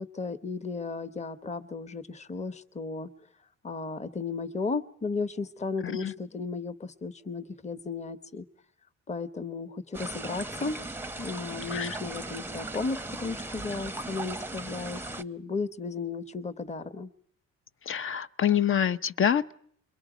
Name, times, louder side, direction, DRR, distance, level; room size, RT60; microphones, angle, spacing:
voice 1, 0.0-3.1 3.6-8.4 9.1-10.8 11.2-17.1, left 4 dB, 20° left, 1.2 m, -34 dB
sound 1, 9.9-15.2, right 2 dB, 5° right, 0.8 m, -38 dB
voice 2, 17.8-19.5, left 9 dB, 45° left, 0.9 m, -26 dB
29.0 x 22.5 x 5.1 m
cardioid pair, 90°, 30 cm